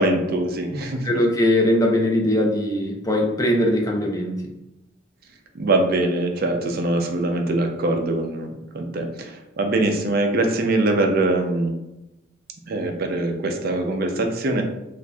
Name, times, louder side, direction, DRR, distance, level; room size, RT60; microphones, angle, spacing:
voice 1, 0.0-1.2 5.5-11.8 12.7-14.6, right 2 dB, 55° right, 3 dB, 0.5 m, -23 dB
voice 2, 1.0-4.5, left 1 dB, 20° left, 0 dB, 0.5 m, -20 dB
4.2 x 2.5 x 2.3 m, 0.91 s
head